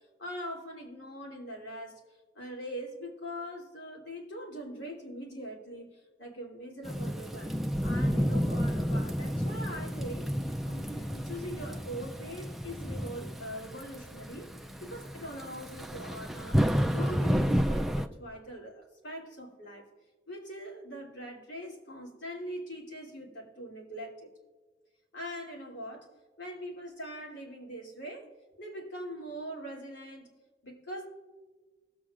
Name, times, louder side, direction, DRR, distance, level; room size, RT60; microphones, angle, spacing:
voice 1, 0.2-2.0 2.3-7.5 7.8-10.3 10.7-14.5 14.8-19.9 20.3-24.3 25.1-26.1 26.4-28.3 28.6-30.3 30.6-31.1, equal, 75° left, -1 dB, 2.9 m, -42 dB
Thunderstorm / Rain, 6.8-18.1, equal, ahead, 0.3 m, -31 dB
20.0 x 7.9 x 2.5 m, 1.3 s
head